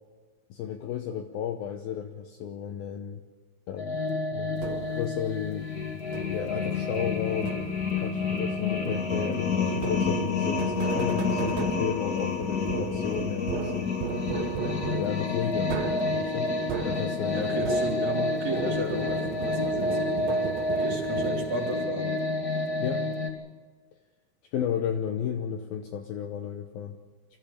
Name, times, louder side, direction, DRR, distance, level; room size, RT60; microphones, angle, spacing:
voice 1, 0.5-3.2 3.7-4.0 4.3-5.7 6.3-7.6 8.0-13.9 15.0-15.7 16.1-16.5 16.8-17.7 22.8-23.0 24.5-27.0, left 9 dB, 75° left, 5 dB, 2.3 m, -33 dB
sound 1, 3.8-23.3, left 3 dB, 30° left, 2.1 m, -29 dB
sound 2, 4.6-5.1 6.1-6.6 7.5-8.0 9.8-18.3 18.6-21.7, right 7 dB, 75° right, 3.4 m, -36 dB
voice 2, 17.3-20.4 20.7-22.2, right 1 dB, 45° right, -1 dB, 4.4 m, -33 dB
25.5 x 14.5 x 8.7 m, 1.4 s
omnidirectional pair, 5.2 m